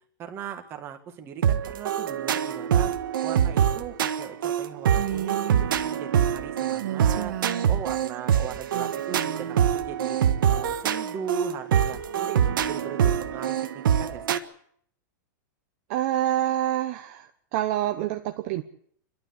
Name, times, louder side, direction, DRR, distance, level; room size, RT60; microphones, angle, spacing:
voice 1, 0.2-2.9 3.2-10.2 10.5-14.4, right 7 dB, 20° right, 5 dB, 2.0 m, -38 dB
sound 1, 1.4-14.4, right 9 dB, 85° right, 1.5 m, -24 dB
Female speech woman speaking, 4.9-5.6 6.7-8.2 8.7-9.6, right 12 dB, 65° right, 2.2 m, -34 dB
voice 2, 15.9-18.6, right 12 dB, 40° right, 6 dB, 1.0 m, -27 dB
28.0 x 12.5 x 8.3 m, 0.65 s
supercardioid pair, 170°, 11 cm